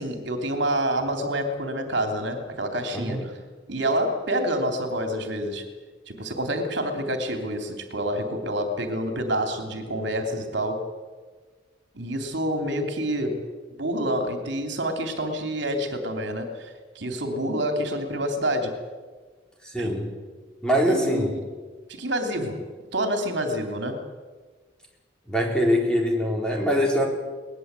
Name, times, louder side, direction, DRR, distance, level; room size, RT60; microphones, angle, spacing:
voice 1, 0.0-3.3 3.7-5.6 6.1-10.8 11.9-13.4 13.8-18.8 19.8-20.0 20.9-21.4 21.9-22.6 22.9-24.0, right 1 dB, 65° right, 5 dB, 3.2 m, -28 dB
voice 2, 2.9-3.2 19.6-20.1 20.6-21.3 25.3-27.1, equal, 5° left, -1 dB, 4.2 m, -23 dB
22.0 x 20.0 x 8.3 m, 1.4 s
head